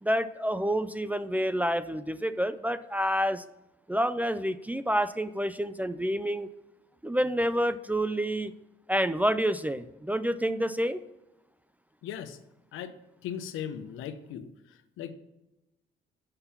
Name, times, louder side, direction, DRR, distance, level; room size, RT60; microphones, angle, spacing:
voice 1, 0.0-3.4 3.9-6.5 7.0-8.5 8.9-11.0, equal, 10° right, 13 dB, 0.3 m, -28 dB
voice 2, 12.0-12.4 12.7-12.9 13.2-14.5 15.0-15.1, left 9 dB, 85° left, 10 dB, 0.7 m, -37 dB
6.8 x 5.7 x 5.6 m, 0.96 s
cardioid pair, 90°, 20 cm